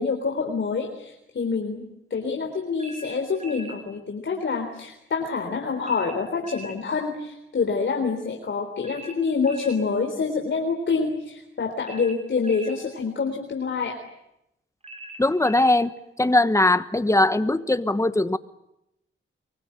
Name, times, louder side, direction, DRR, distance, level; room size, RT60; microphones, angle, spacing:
voice 1, 0.0-1.8 2.1-14.0, left 5 dB, 65° left, 3 dB, 3.8 m, -27 dB
sound 1, 2.8-3.8 5.8-6.8 8.8-9.8 11.8-12.8 14.8-15.8, right 1 dB, 30° right, 4.6 m, -41 dB
voice 2, 15.2-15.9 16.2-18.4, left 2 dB, 15° left, 11 dB, 1.2 m, -20 dB
24.0 x 23.5 x 8.8 m, 0.84 s
wide cardioid pair, 110°, 21 cm